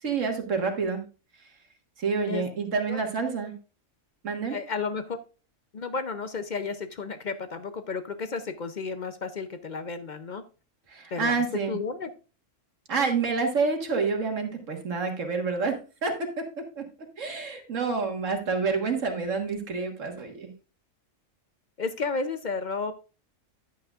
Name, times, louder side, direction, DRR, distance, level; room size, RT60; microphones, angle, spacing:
voice 1, 0.0-1.0 2.0-3.5 4.2-4.6 10.9-11.7 12.9-20.5, right 4 dB, 70° right, 4 dB, 1.9 m, -28 dB
voice 2, 4.5-5.2 5.7-10.4 11.1-12.1 21.8-22.9, left 4 dB, 50° left, 10 dB, 0.6 m, -32 dB
10.5 x 8.6 x 2.4 m, 0.33 s
omnidirectional pair, 1.3 m